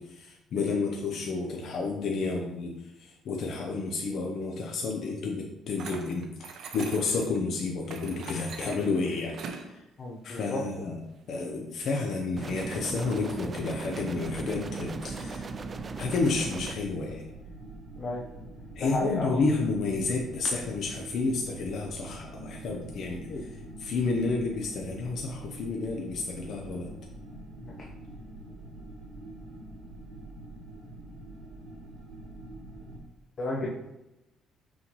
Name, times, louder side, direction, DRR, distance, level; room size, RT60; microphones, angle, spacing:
voice 1, 0.0-6.5 6.7-9.8 10.2-11.0 11.3-15.5 16.0-17.2 18.8-23.3 23.8-26.9, left 3 dB, 60° left, 1 dB, 0.8 m, -31 dB
sound 1, 5.8-7.4 7.9-9.7, right 5 dB, 60° right, 0.9 m, -42 dB
voice 2, 10.0-10.6 18.0-18.2 18.8-19.4 23.3-23.4 27.6-27.9 33.4-33.7, left 2 dB, 35° left, -3 dB, 1.0 m, -32 dB
sound 2, 12.4-16.8, right 4 dB, 30° right, 0.4 m, -38 dB
sound 3, 14.1-33.0, right 1 dB, 80° right, 2.5 m, -45 dB
6.2 x 5.7 x 3.1 m, 0.91 s
cardioid pair, 115°, 0 cm